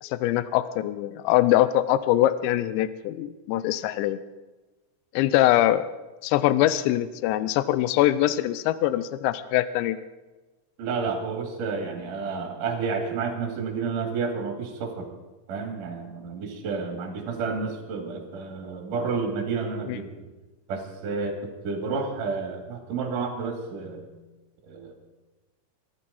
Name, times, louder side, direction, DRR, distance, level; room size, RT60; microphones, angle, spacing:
voice 1, 0.0-4.2 5.1-5.8 6.2-10.0 19.9-20.0, left 14 dB, 90° left, 14 dB, 2.6 m, -23 dB
voice 2, 10.8-15.1 15.5-20.1 20.7-21.4 21.6-24.1 24.6-24.9, right 4 dB, 50° right, 2 dB, 3.1 m, -30 dB
22.5 x 14.0 x 4.1 m, 1.1 s
omnidirectional pair, 5.9 m